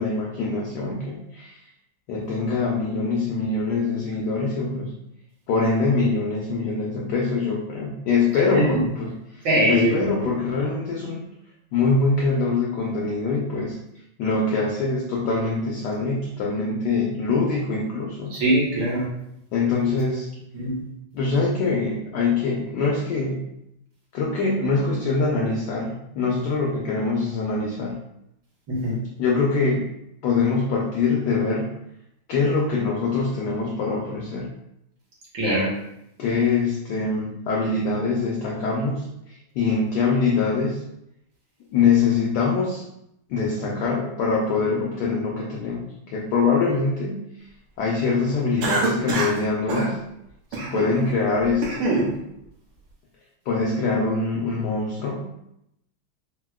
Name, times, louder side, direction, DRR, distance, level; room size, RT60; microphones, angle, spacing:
voice 1, 0.0-1.6 2.1-4.9 5.5-11.3 11.7-13.8 14.2-18.3 19.5-20.3 21.1-23.4 24.1-28.0 29.2-29.9 30.2-31.7 32.3-34.5 36.2-40.8 41.7-42.8 43.3-47.3 47.8-50.0 50.5-52.2 53.5-55.3, left 4 dB, 85° left, -2 dB, 0.9 m, -24 dB
voice 2, 8.5-8.8 9.4-10.1 18.3-19.1 20.5-20.8 28.7-29.0 35.3-35.7, right 1 dB, 70° right, -5 dB, 1.9 m, -22 dB
Cough, 48.6-49.4 49.7-49.9 50.5-50.9 51.4-52.1, right 3 dB, 90° right, 1.5 m, -25 dB
4.4 x 2.0 x 2.2 m, 0.80 s
omnidirectional pair, 2.3 m